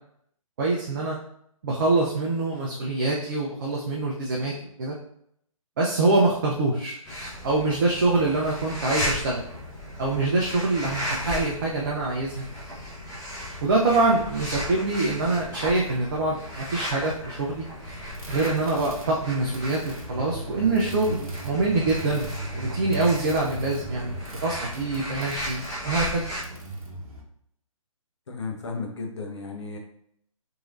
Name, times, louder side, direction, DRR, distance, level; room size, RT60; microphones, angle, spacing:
voice 1, 0.6-1.2 1.6-4.5 4.8-5.0 5.8-7.0 7.4-9.4 10.0-12.5 13.6-17.6 18.3-22.3 22.5-24.1 24.4-26.3, right 2 dB, 35° right, -3 dB, 0.5 m, -25 dB
sound 1, 7.1-26.4, equal, 15° left, 0.7 m, -35 dB
sound 2, 17.8-27.2, right 2 dB, 90° right, 0.7 m, -37 dB
voice 2, 28.3-29.8, left 4 dB, 55° left, 2 dB, 0.7 m, -34 dB
3.1 x 2.7 x 2.5 m, 0.71 s
figure-of-eight pair, 135°, 18 cm